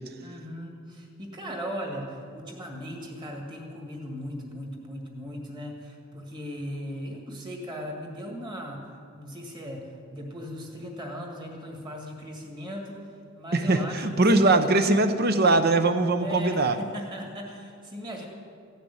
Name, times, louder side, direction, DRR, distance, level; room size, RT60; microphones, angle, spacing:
voice 1, 0.2-14.6 16.2-18.2, equal, 20° right, 0 dB, 1.9 m, -38 dB
voice 2, 13.5-16.8, right 2 dB, 45° right, 9 dB, 0.8 m, -21 dB
15.5 x 6.8 x 9.5 m, 2.3 s
head